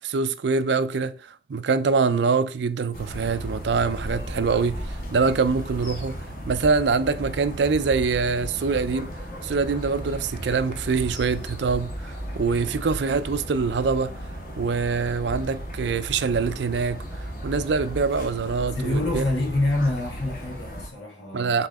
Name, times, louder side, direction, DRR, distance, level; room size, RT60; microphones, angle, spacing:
voice 1, 0.0-1.2 1.5-6.2 6.5-9.1 9.4-14.2 14.6-17.0 17.4-19.2 21.3-21.7, right 4 dB, 70° right, 0.4 m, -24 dB
sound 1, 2.9-20.9, equal, 45° left, 1.8 m, -35 dB
voice 2, 18.8-21.6, left 2 dB, 80° left, 2.2 m, -26 dB
7.5 x 3.8 x 3.5 m
head